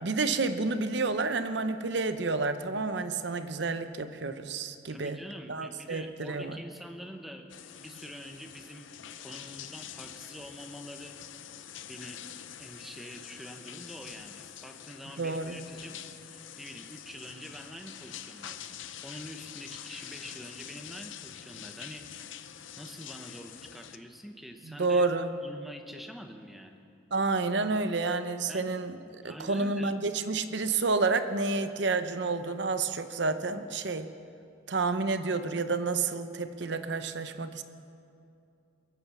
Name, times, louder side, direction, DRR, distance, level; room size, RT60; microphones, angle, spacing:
voice 1, 0.0-5.2 5.5-6.6 15.2-15.6 24.7-25.3 27.1-34.1 34.7-37.6, right 3 dB, 65° right, 11 dB, 0.7 m, -30 dB
voice 2, 4.9-7.5 7.8-8.9 9.2-11.4 11.9-12.2 12.6-18.8 19.0-22.5 22.8-25.1 25.4-26.8 28.5-28.8 29.2-29.9, equal, ahead, 5 dB, 0.9 m, -46 dB
sound 1, 7.5-24.0, left 10 dB, 80° left, 0.7 m, -46 dB
22.5 x 9.0 x 7.1 m, 2.6 s
head